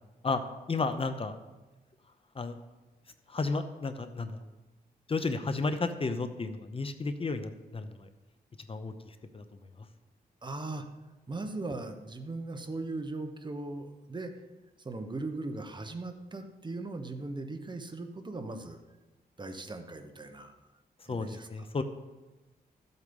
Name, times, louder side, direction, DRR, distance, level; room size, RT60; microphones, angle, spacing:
voice 1, 0.7-1.3 2.3-2.6 3.3-4.4 5.1-8.1 8.7-9.4 21.1-21.8, left 3 dB, 35° left, 9 dB, 0.8 m, -33 dB
voice 2, 10.4-10.8 11.3-14.3 14.8-18.8 19.4-20.5 21.1-21.7, right 2 dB, 30° right, 6 dB, 1.2 m, -39 dB
13.5 x 8.2 x 5.4 m, 1.1 s
wide cardioid pair, 105°, 16 cm